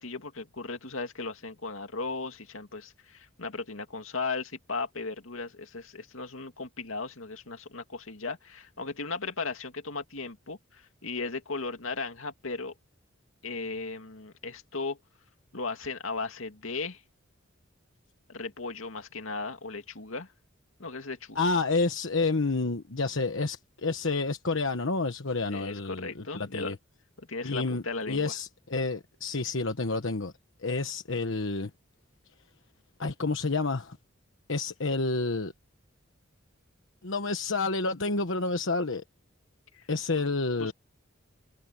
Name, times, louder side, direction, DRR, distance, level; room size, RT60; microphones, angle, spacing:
voice 1, 0.0-12.7 13.4-15.0 15.5-17.0 18.3-20.3 20.8-21.4 25.5-26.7 27.2-28.3 39.7-39.9 40.6-40.7, left 3 dB, 85° left, 2.4 m, -36 dB
voice 2, 21.4-26.7 27.4-30.3 30.6-31.7 33.0-34.0 34.5-35.5 37.0-39.0 39.9-40.7, left 3 dB, 70° left, 1.2 m, -29 dB
head